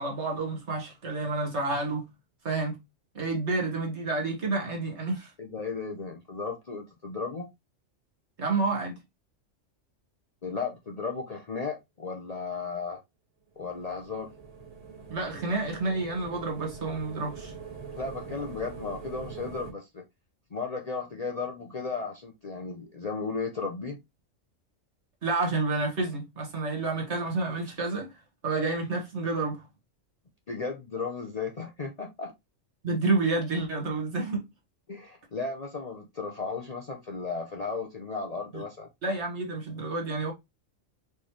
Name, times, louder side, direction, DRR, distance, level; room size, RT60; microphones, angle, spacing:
voice 1, 0.0-2.1 2.4-2.8 3.1-5.3 8.4-9.0 15.1-17.5 25.2-28.2 28.4-29.6 32.8-34.4 38.5-38.6 39.0-40.3, right 3 dB, 60° right, 1.8 m, -29 dB
voice 2, 5.4-7.5 10.4-13.0 13.6-14.3 17.9-20.0 20.5-24.0 30.5-32.3 34.9-38.9, left 4 dB, 40° left, 0.6 m, -35 dB
sound 1, 13.6-19.7, right 5 dB, 30° right, 1.3 m, -43 dB
4.4 x 3.5 x 3.0 m
omnidirectional pair, 1.3 m